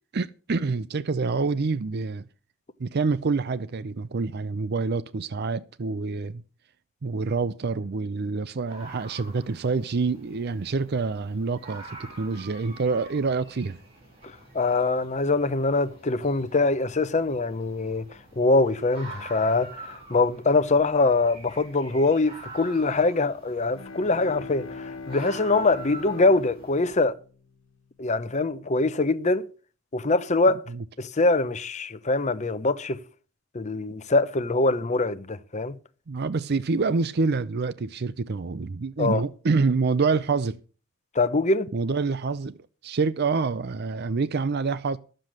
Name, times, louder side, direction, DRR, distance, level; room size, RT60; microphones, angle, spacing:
voice 1, 0.1-2.2 2.8-6.4 7.0-13.8 36.1-40.6 41.7-42.6 42.8-45.0, right 4 dB, 50° right, 0.5 m, -27 dB
sound 1, 8.6-27.0, right 2 dB, 30° right, 7.8 m, -46 dB
voice 2, 14.2-18.1 18.4-27.1 28.0-29.5 29.9-30.6 31.0-33.0 33.5-35.7 39.0-39.2 41.1-41.7, left 3 dB, 35° left, 0.8 m, -23 dB
Bowed string instrument, 23.7-28.3, left 3 dB, 90° left, 1.3 m, -41 dB
12.0 x 7.7 x 6.4 m
head